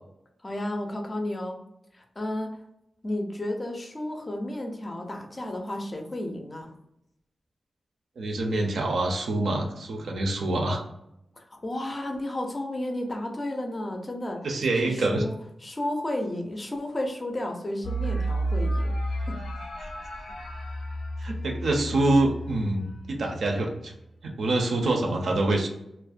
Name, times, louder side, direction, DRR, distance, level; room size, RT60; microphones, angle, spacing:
voice 1, 0.4-1.6 2.0-2.5 3.0-6.7 11.4-14.4 14.8-15.3 15.6-18.9 19.2-19.4, left 1 dB, 20° left, 2 dB, 0.4 m, -32 dB
voice 2, 8.2-10.8 14.4-15.2 21.2-23.9 24.2-25.7, right 2 dB, 75° right, 2 dB, 0.5 m, -26 dB
sound 1, 17.8-23.8, right 1 dB, 80° left, 0.5 m, -32 dB
2.4 x 2.1 x 2.4 m, 0.83 s
wide cardioid pair, 175°, 0 cm